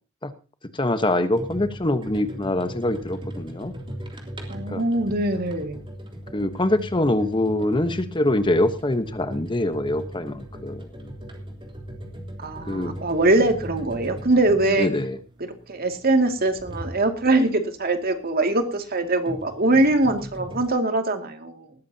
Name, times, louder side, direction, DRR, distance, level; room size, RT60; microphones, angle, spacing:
voice 1, 0.7-3.7 4.7-4.8 6.3-11.1 12.7-13.0 14.8-15.2, left 1 dB, 25° left, 10 dB, 1.1 m, -24 dB
sound 1, 1.3-17.7 18.8-20.7, equal, 25° right, 3.5 m, -38 dB
voice 2, 4.5-5.9 12.4-14.9 15.5-21.7, right 2 dB, 50° right, 6 dB, 2.3 m, -22 dB
19.5 x 14.0 x 2.8 m, 0.32 s
head